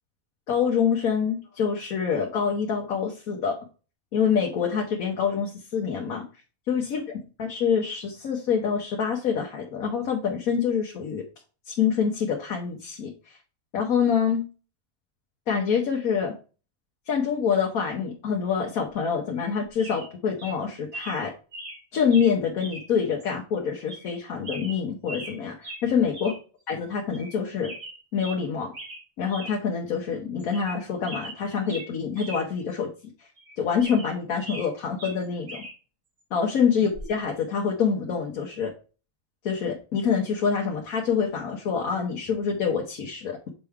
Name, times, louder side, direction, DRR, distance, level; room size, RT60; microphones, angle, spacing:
voice 1, 0.5-3.6 4.1-6.2 6.7-7.0 7.4-11.2 11.7-13.1 13.7-14.4 15.5-16.3 17.1-21.3 21.9-26.3 26.7-27.7 28.1-28.7 29.2-32.9 33.6-35.6 36.3-38.7 39.4-43.5, left 6 dB, 90° left, 0 dB, 1.4 m, -26 dB
sound 1, 19.4-19.5 19.8-20.1 20.4-20.6 20.9-21.2 21.5-21.8 22.1-22.3 22.6-22.9 23.2-23.3 23.9-24.1 24.4-25.4 25.6-25.8 26.1-26.4 26.7-26.8 27.1-27.3 27.6-28.4 28.7-29.0 29.3-29.5 29.9-30.0 30.4-30.8 31.0-32.4 32.7-32.8 33.4-34.7 35.0-35.7 36.9-37.2, right 1 dB, 70° right, 2.6 m, -40 dB
6.7 x 4.7 x 3.5 m, 0.35 s
omnidirectional pair, 1.5 m